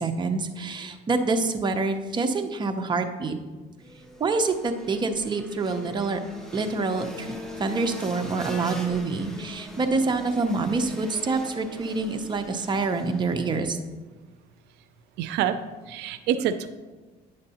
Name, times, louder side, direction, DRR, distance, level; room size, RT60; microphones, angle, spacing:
voice 1, 0.0-3.4 4.2-6.2 6.5-7.3 7.6-13.8, right 3 dB, 25° right, 6 dB, 0.6 m, -26 dB
sound 1, 3.8-13.6, left 1 dB, 5° left, 1.0 m, -41 dB
voice 2, 15.2-15.6 15.9-16.7, right 10 dB, 85° right, 11 dB, 0.4 m, -26 dB
8.9 x 6.5 x 2.8 m, 1.3 s
cardioid pair, 110°, 17 cm